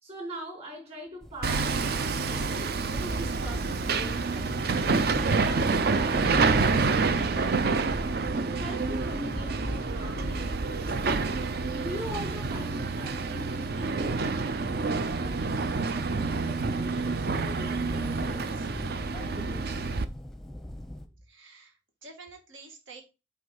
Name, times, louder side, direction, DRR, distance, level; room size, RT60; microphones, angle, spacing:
voice 1, 0.0-8.1 8.4-11.2 11.6-18.7 19.1-19.9, right 1 dB, 35° right, 5.0 m, -43 dB
sound 1, 1.2-21.1, left 1 dB, ahead, 0.7 m, -41 dB
Hammer, 1.4-20.1, right 4 dB, 55° right, 0.5 m, -28 dB
voice 2, 21.3-23.0, right 3 dB, 80° right, 2.0 m, -49 dB
8.4 x 3.3 x 5.5 m
head